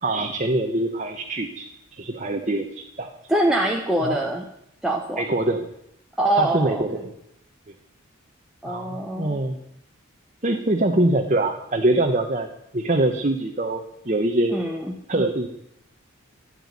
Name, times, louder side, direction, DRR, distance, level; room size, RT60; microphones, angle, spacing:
voice 1, 0.0-3.1 4.0-4.2 5.2-5.6 6.3-7.1 8.6-9.6 10.4-14.5 15.1-15.5, right 2 dB, 35° right, 4 dB, 1.1 m, -24 dB
voice 2, 3.3-4.5 4.8-5.2 6.2-6.8 8.6-9.4 14.5-14.9, right 1 dB, 5° right, -1 dB, 1.2 m, -24 dB
13.5 x 10.0 x 9.7 m, 0.78 s
head